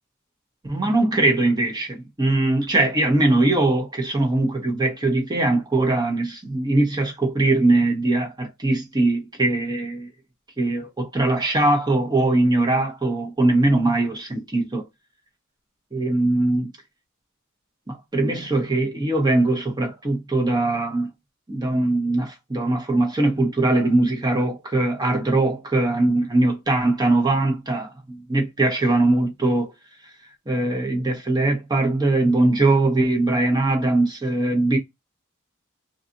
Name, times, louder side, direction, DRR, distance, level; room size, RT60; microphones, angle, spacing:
voice 1, 0.6-10.1 10.6-14.8 15.9-16.6 17.9-21.1 21.5-29.7 30.5-34.8, right 2 dB, 20° right, 0.7 m, -21 dB
2.6 x 2.4 x 2.6 m
head